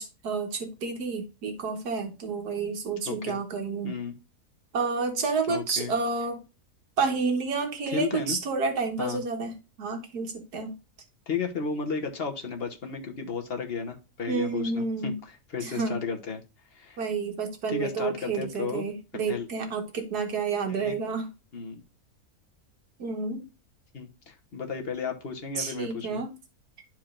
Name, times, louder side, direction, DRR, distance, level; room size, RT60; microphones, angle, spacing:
voice 1, 0.0-3.9 4.7-6.4 7.0-9.5 9.8-10.7 14.3-15.2 15.6-16.0 17.0-21.3 23.0-23.5 25.6-26.3, right 4 dB, 85° right, 4 dB, 1.9 m, -30 dB
voice 2, 3.1-3.4 3.8-4.1 5.5-5.9 7.9-8.4 9.0-9.2 11.3-16.4 16.7-17.0 17.7-18.9 19.3-19.5 20.7-20.9 21.5-21.8 23.9-26.2, left 5 dB, 45° left, 4 dB, 1.2 m, -33 dB
11.5 x 4.5 x 2.5 m, 0.29 s
omnidirectional pair, 1.6 m